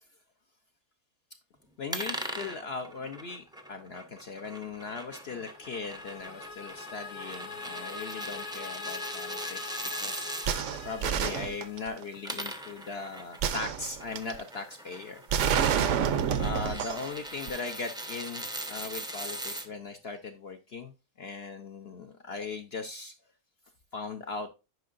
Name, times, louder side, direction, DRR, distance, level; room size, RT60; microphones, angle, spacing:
voice 1, 1.8-10.3 10.8-15.2 16.4-23.1 23.9-24.5, left 4 dB, 55° left, 5 dB, 0.8 m, -39 dB
sound 1, 1.9-10.5 12.0-19.7, right 1 dB, 5° right, 0.3 m, -40 dB
sound 2, 5.2-12.3, left 5 dB, 80° left, 1.8 m, -43 dB
sound 3, 10.5-12.0 13.4-14.4 15.3-17.1 17.5-17.6, right 8 dB, 65° right, 0.9 m, -28 dB
9.4 x 5.4 x 2.5 m, 0.28 s
omnidirectional pair, 1.6 m